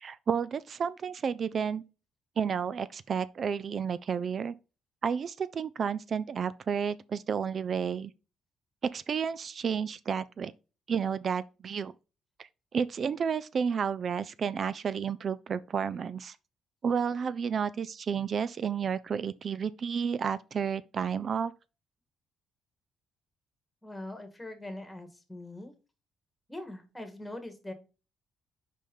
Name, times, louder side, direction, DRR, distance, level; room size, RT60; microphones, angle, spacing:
voice 1, 0.0-1.8 2.4-4.5 5.0-8.1 8.9-10.5 10.9-11.9 12.4-16.4 16.8-21.5, right 7 dB, 50° right, 0.4 m, -31 dB
voice 2, 23.8-25.7 26.5-27.7, left 1 dB, 10° left, 1.8 m, -42 dB
5.4 x 5.0 x 5.4 m
cardioid pair, 90°, 0 cm